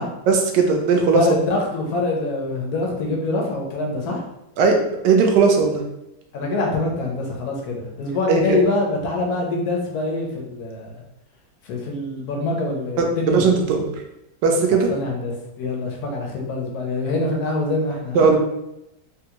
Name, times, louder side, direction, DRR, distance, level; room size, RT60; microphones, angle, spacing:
voice 1, 0.3-1.2 4.6-4.8 5.0-5.8 8.3-8.4 13.0-13.8 14.4-14.9 18.1-18.4, right 5 dB, 75° right, 3 dB, 1.2 m, -17 dB
voice 2, 1.1-4.2 6.3-11.0 11.6-13.4 14.7-18.3, left 2 dB, 65° left, 0 dB, 1.1 m, -25 dB
3.4 x 2.3 x 2.8 m, 0.87 s
omnidirectional pair, 2.0 m